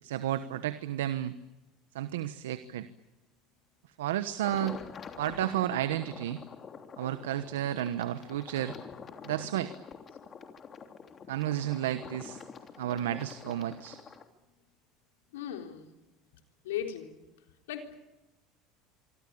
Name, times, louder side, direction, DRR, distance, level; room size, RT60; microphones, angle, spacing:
voice 1, 0.0-1.3 1.9-2.9 4.0-4.8 5.2-6.4 7.0-8.8 9.2-9.7 11.3-12.4 12.8-14.0, right 12 dB, 90° right, 12 dB, 1.1 m, -32 dB
sound 1, 4.4-14.3, left 6 dB, 35° left, 3.2 m, -46 dB
voice 2, 15.3-15.9 16.6-17.1 17.7-18.0, left 10 dB, 90° left, 5 dB, 3.8 m, -37 dB
25.0 x 25.0 x 8.7 m, 1.0 s
supercardioid pair, 90°, 0 cm